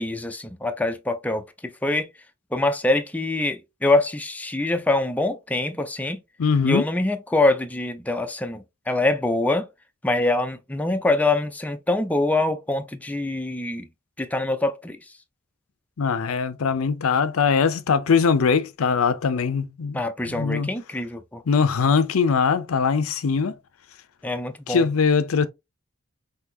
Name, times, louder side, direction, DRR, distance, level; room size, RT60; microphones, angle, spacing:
voice 1, 0.0-1.4 1.8-2.1 2.5-6.2 6.6-9.7 10.0-13.9 14.2-15.0 19.9-21.4 24.2-24.9, left 2 dB, 5° left, 0.4 m, -24 dB
voice 2, 6.4-6.8 16.0-20.7 21.5-23.5 24.7-25.5, left 5 dB, 80° left, 0.5 m, -21 dB
5.8 x 2.7 x 2.7 m
head